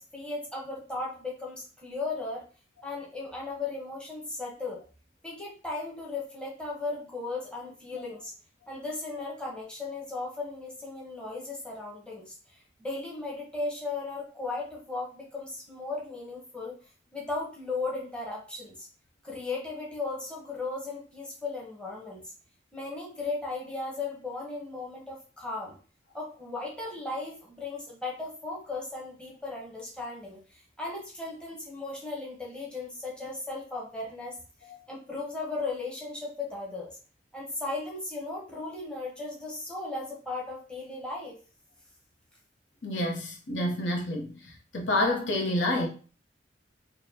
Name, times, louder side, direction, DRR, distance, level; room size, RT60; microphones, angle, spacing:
voice 1, 0.0-2.4 2.8-4.8 5.2-8.3 8.7-16.8 17.1-18.9 19.2-22.2 22.7-25.8 26.1-34.3 34.9-36.9 37.3-41.4, left 3 dB, 5° left, 1.0 m, -36 dB
voice 2, 42.8-44.3 44.7-45.9, left 1 dB, 80° left, 0.9 m, -28 dB
4.9 x 2.3 x 2.8 m
head